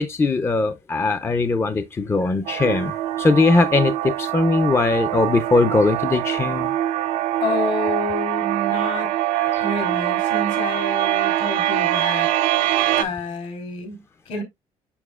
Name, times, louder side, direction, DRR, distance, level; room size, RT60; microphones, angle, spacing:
voice 1, 0.0-6.7 9.4-9.6, left 3 dB, 20° left, 0.5 m, -20 dB
sound 1, 2.4-13.0, right 13 dB, 90° right, 0.7 m, -23 dB
voice 2, 7.4-9.2 9.6-12.3 13.0-14.4, left 3 dB, 70° left, 3.7 m, -29 dB
7.0 x 6.1 x 2.3 m
cardioid pair, 115°, 13 cm